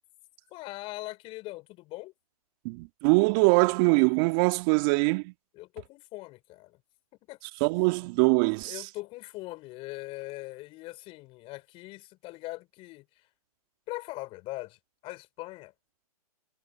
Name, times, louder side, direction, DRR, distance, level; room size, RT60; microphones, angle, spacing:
voice 1, 0.5-2.1 5.5-6.8 7.3-7.4 8.6-13.3 13.9-15.7, left 20 dB, 30° left, 4.4 m, -41 dB
voice 2, 2.6-5.3 7.6-8.8, right 30 dB, 35° right, 1.8 m, -23 dB
hypercardioid pair, 130°, 20 cm